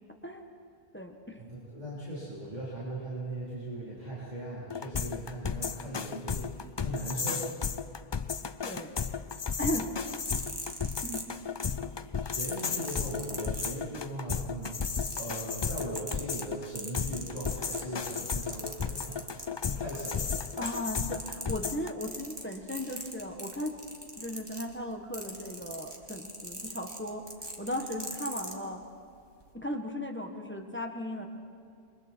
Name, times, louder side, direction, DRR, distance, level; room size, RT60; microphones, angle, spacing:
voice 1, 0.9-1.4 8.6-8.9 9.6-9.9 11.0-11.2 20.6-23.8 24.2-27.2 27.6-28.8 29.5-31.3, left 1 dB, 10° left, 3 dB, 1.5 m, -36 dB
voice 2, 1.5-7.5 11.9-14.8 15.2-20.4, right 1 dB, 40° right, -8 dB, 4.3 m, -39 dB
sound 1, 4.7-21.9, left 6 dB, 40° left, 0.3 m, -34 dB
sound 2, 10.0-11.7 12.4-14.1 14.5-19.5 19.9-20.9 21.1-28.6 29.3-29.5, right 1 dB, 20° right, 2.1 m, -41 dB
28.0 x 24.5 x 4.6 m, 2.3 s
omnidirectional pair, 1.2 m